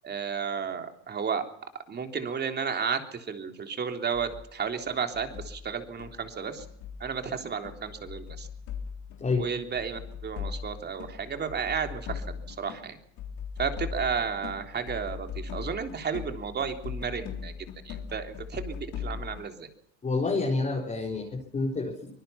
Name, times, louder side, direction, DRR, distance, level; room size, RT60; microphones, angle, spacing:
voice 1, 0.0-1.4 1.9-6.6 7.0-8.5 9.3-13.0 13.6-17.5 17.8-19.7, right 6 dB, 30° right, 6 dB, 3.5 m, -33 dB
sound 1, 4.1-4.5 4.8-12.9 13.2-19.4, left 7 dB, 55° left, 4.1 m, -39 dB
voice 2, 20.0-22.1, left 3 dB, 20° left, -1 dB, 4.3 m, -28 dB
24.5 x 20.5 x 5.9 m, 0.68 s
supercardioid pair, 105°, 35 cm